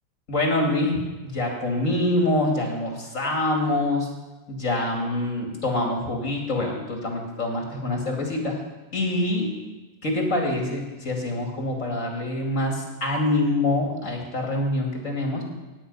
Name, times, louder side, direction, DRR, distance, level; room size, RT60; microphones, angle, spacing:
voice 1, 0.3-4.1 4.5-8.6 8.9-9.5 10.0-15.4, left 1 dB, 70° left, 1 dB, 2.9 m, -25 dB
17.0 x 9.1 x 5.5 m, 1.2 s
omnidirectional pair, 1.4 m